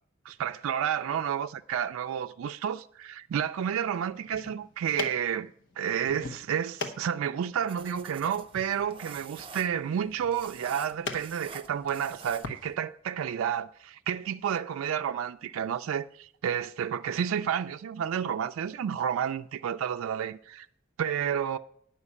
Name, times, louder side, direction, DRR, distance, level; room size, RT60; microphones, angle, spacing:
voice 1, 0.3-5.5 5.8-20.7 21.0-21.6, right 8 dB, 85° right, 0.3 m, -31 dB
sound 1, 4.1-12.6, left 3 dB, 65° left, 1.0 m, -42 dB
sound 2, 7.7-12.7, right 4 dB, 25° right, 0.6 m, -47 dB
9.7 x 5.7 x 8.3 m
head